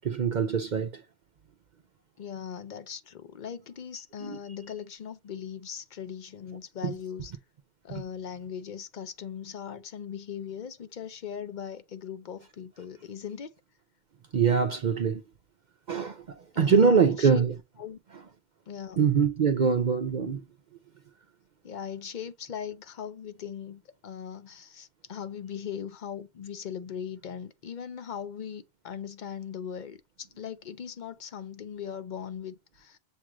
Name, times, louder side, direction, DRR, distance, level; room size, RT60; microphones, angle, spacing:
voice 1, 0.0-0.9 4.2-4.4 6.8-6.9 14.3-15.2 15.9-16.2 16.6-17.6 19.0-20.4, right 6 dB, 55° right, 0.6 m, -23 dB
voice 2, 2.2-7.3 7.8-13.5 16.5-17.5 17.8-18.0 18.7-19.0 21.6-30.0 30.4-33.0, left 8 dB, 55° left, 0.6 m, -39 dB
7.2 x 2.4 x 3.0 m
omnidirectional pair, 1.2 m